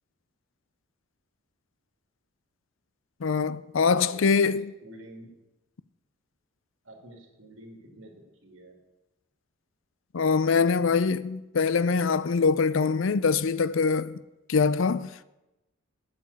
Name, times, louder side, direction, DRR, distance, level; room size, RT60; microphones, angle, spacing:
voice 1, 3.2-4.7 10.1-14.2 14.5-15.2, left 5 dB, 70° left, 0.5 m, -24 dB
voice 2, 3.9-4.5 4.8-5.3 6.8-8.8, right 1 dB, 65° right, 2.8 m, -48 dB
8.5 x 7.7 x 8.3 m
head